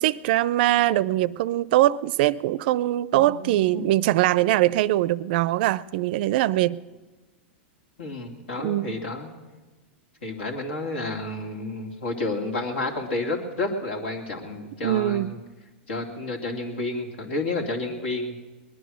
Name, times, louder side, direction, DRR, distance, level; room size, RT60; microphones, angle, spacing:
voice 1, 0.0-6.8 8.6-9.0 14.8-15.4, right 15 dB, 55° right, 0.4 m, -22 dB
voice 2, 3.1-3.9 8.0-9.3 10.2-15.4 15.9-18.3, left 2 dB, 80° left, 2.6 m, -30 dB
20.5 x 10.5 x 6.3 m
hypercardioid pair, 130°, 6 cm